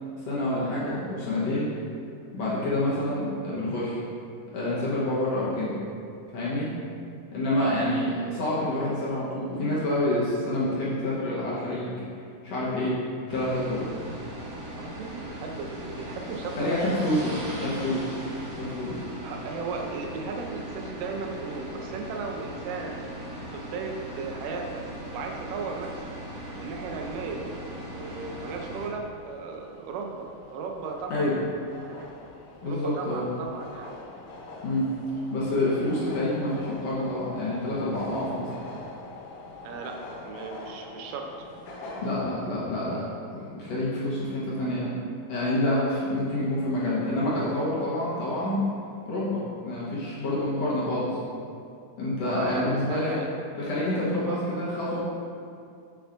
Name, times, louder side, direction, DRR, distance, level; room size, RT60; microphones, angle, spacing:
voice 1, 0.2-1.7 2.3-4.0 4.5-5.7 6.3-6.7 7.3-12.0 12.4-13.0 13.3-13.9 16.6-17.3 17.6-18.1 18.6-19.0 31.1-31.4 32.6-33.3 34.6-34.9 35.3-38.5 42.0-43.0 43.3-44.9 45.3-48.6 49.1-51.2 52.0-53.2 53.6-55.0, left 1 dB, 65° left, -8 dB, 1.9 m, -27 dB
sound 1, 13.3-28.9, equal, 55° right, 2.5 m, -39 dB
voice 2, 14.8-17.4 18.8-23.1 23.5-24.9 25.1-26.2 26.5-27.5 27.9-31.3 31.8-32.1 32.6-34.0 39.6-41.3 48.3-48.4 52.2-53.3 54.2-54.4, right 4 dB, 85° right, 2 dB, 2.3 m, -36 dB
sound 2, 26.5-43.0, left 2 dB, 80° left, 2.5 m, -45 dB
7.8 x 7.0 x 2.6 m, 2.4 s
omnidirectional pair, 3.8 m